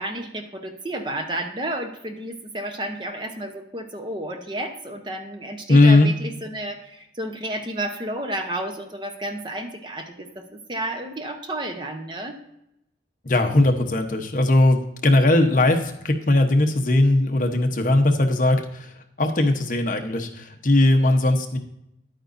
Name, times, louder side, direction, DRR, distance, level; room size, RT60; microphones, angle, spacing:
voice 1, 0.0-12.4, right 1 dB, 25° right, 5 dB, 0.8 m, -31 dB
voice 2, 5.7-6.1 13.2-18.9 19.2-21.6, left 2 dB, 45° left, 4 dB, 0.9 m, -19 dB
10.5 x 8.9 x 2.6 m, 0.81 s
head